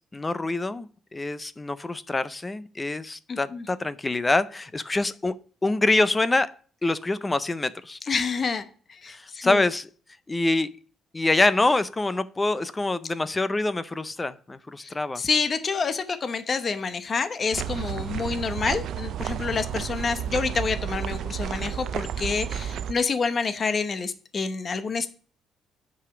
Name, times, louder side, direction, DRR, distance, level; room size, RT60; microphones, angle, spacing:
voice 1, 0.0-5.3 5.6-6.5 6.8-8.0 9.1-9.9 10.3-10.7 11.1-15.2 18.0-18.3, left 2 dB, 15° left, 15 dB, 0.5 m, -25 dB
voice 2, 3.3-3.6 8.1-9.6 14.8-14.9 15.2-25.1, left 5 dB, 30° left, 10 dB, 0.8 m, -28 dB
sound 1, 17.5-22.9, right 9 dB, 60° right, 0.5 m, -31 dB
8.9 x 4.9 x 6.0 m, 0.42 s
cardioid pair, 155°, 0 cm